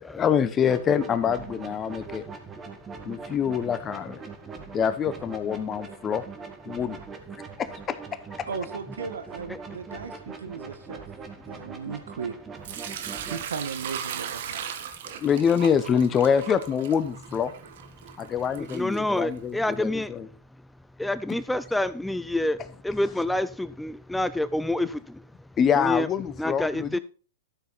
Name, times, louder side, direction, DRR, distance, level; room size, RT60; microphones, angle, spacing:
voice 1, 0.1-2.2 3.0-4.2 4.7-6.2 6.6-7.0 8.4-8.5 15.2-17.5 18.2-20.3 25.6-27.0, left 7 dB, 25° left, 1.1 m, -25 dB
sound 1, 0.7-13.5, right 5 dB, 20° right, 2.1 m, -42 dB
voice 2, 8.5-11.0 11.5-12.3 13.3-14.7, right 6 dB, 80° right, 1.5 m, -36 dB
Sink (filling or washing) / Liquid, 12.6-19.6, right 9 dB, 60° right, 1.5 m, -38 dB
voice 3, 18.6-20.1 21.0-25.3 25.8-26.1 26.4-27.0, left 1 dB, 5° left, 0.4 m, -28 dB
13.0 x 7.5 x 4.2 m
hypercardioid pair, 120°, 0 cm